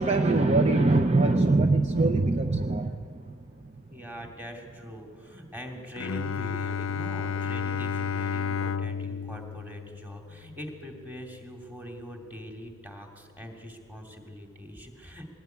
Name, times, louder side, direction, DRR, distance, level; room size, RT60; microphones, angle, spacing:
voice 1, 0.0-3.4 3.6-3.7, right 2 dB, 30° right, 7 dB, 0.7 m, -23 dB
voice 2, 3.9-15.3, equal, 10° right, 2 dB, 2.7 m, -42 dB
Bowed string instrument, 6.0-11.7, left 6 dB, 60° left, 0.5 m, -33 dB
20.5 x 18.5 x 9.3 m, 2.2 s
head